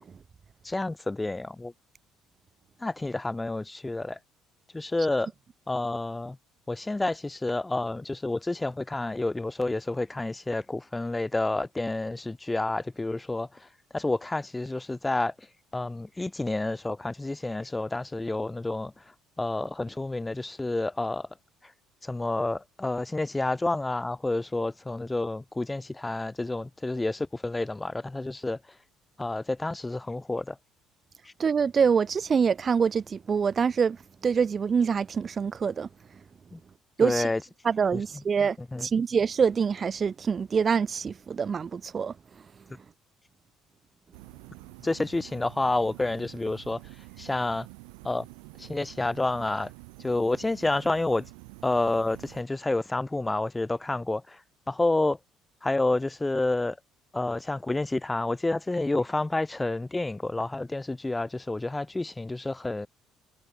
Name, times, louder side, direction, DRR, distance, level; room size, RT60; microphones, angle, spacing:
voice 1, 0.6-1.7 2.8-4.2 4.7-5.3 5.7-6.4 6.7-13.7 13.9-15.3 15.7-18.9 19.4-21.3 22.0-28.6 29.2-30.6 36.5-36.6 37.0-37.4 37.9-38.0 38.7-38.9 44.8-46.8 47.2-47.7 48.0-48.3 48.6-49.7 50.0-51.2 51.6-54.4 54.7-55.2 55.6-56.8 57.1-62.9, left 2 dB, 15° left, 4.9 m, -29 dB
voice 2, 31.4-34.0 34.2-35.9 37.0-37.3 37.6-42.1, right 6 dB, 40° right, 2.9 m, -25 dB
sound 1, 44.1-52.4, right 35 dB, 75° right, 4.5 m, -48 dB
hypercardioid pair, 55°, 0 cm